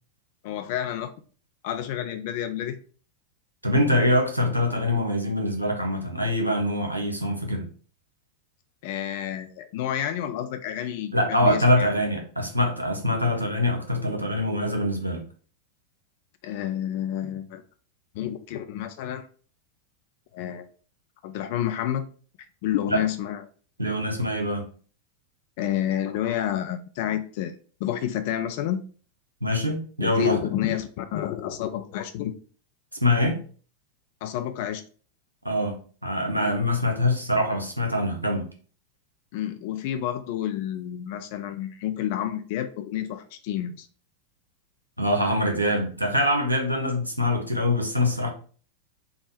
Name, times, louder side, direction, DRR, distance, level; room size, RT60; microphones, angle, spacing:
voice 1, 0.4-1.1 1.6-2.8 8.8-11.9 16.4-17.6 18.1-19.3 20.3-20.7 21.2-22.0 22.6-23.4 25.6-27.5 27.8-28.8 30.0-32.3 34.2-34.8 39.3-43.9, left 11 dB, 50° left, 0.3 m, -29 dB
voice 2, 3.6-7.6 11.1-15.2 22.9-23.0 23.8-24.6 29.4-30.4 33.0-33.4 35.4-35.8 36.0-38.4 45.0-48.3, left 1 dB, 85° right, 0.8 m, -24 dB
3.5 x 2.0 x 4.1 m
figure-of-eight pair, 90°, 0 cm